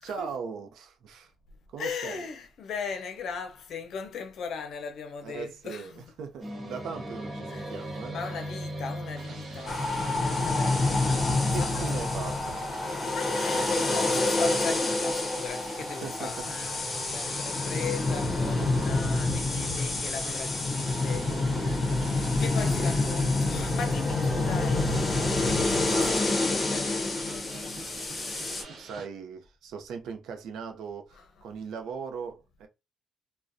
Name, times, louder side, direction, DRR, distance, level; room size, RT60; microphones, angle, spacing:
voice 1, 0.0-1.3 1.7-2.2 5.2-8.2 10.6-11.2 11.5-12.6 15.8-16.5 25.9-26.2 28.8-32.7, right 6 dB, 80° right, 0.5 m, -39 dB
voice 2, 1.8-6.0 7.5-7.8 8.1-11.8 13.1-21.9 22.4-25.0 25.4-27.8 31.1-31.3, left 6 dB, 70° left, 0.6 m, -38 dB
sound 1, 6.4-13.7, right 1 dB, 40° right, 1.2 m, -40 dB
sound 2, 9.2-29.1, right 3 dB, 65° right, 0.9 m, -47 dB
sound 3, 9.7-28.6, left 2 dB, 35° left, 0.8 m, -27 dB
2.4 x 2.1 x 2.6 m
cardioid pair, 90°, 0 cm